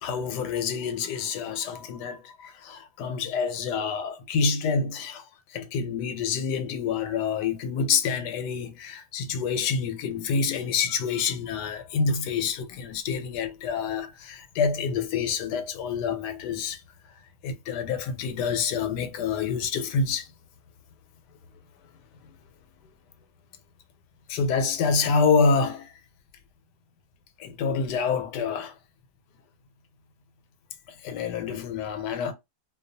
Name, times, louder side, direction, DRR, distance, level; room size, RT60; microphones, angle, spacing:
voice 1, 0.0-5.2 5.5-16.8 17.4-20.3 24.3-25.9 27.4-28.7 31.0-32.3, left 5 dB, 90° left, 1.2 m, -27 dB
2.6 x 2.2 x 2.5 m
omnidirectional pair, 1.8 m